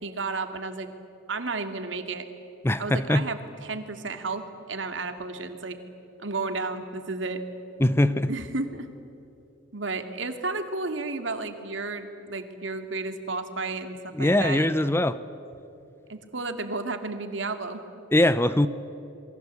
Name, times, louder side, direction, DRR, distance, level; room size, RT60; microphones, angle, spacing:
voice 1, 0.0-0.9 1.3-2.2 2.8-5.8 6.2-7.4 8.3-8.9 9.7-14.8 16.1-17.8, right 3 dB, 70° right, 7 dB, 2.4 m, -32 dB
voice 2, 2.6-3.2 7.8-8.3 14.2-15.2 18.1-18.7, left 1 dB, 15° left, 14 dB, 0.7 m, -22 dB
28.5 x 23.0 x 8.4 m, 2.8 s
head